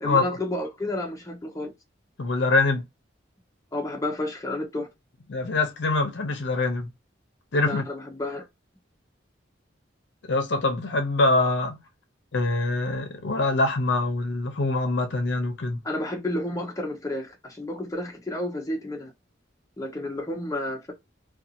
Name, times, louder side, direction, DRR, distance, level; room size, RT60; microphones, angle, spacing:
voice 1, 0.0-1.7 3.7-4.9 7.6-8.5 15.8-19.1 19.8-20.9, left 1 dB, 15° left, 0.6 m, -31 dB
voice 2, 2.2-2.8 5.3-6.9 7.5-7.8 10.3-11.8 12.3-15.8, left 2 dB, 65° left, 0.6 m, -24 dB
2.6 x 2.3 x 2.6 m
head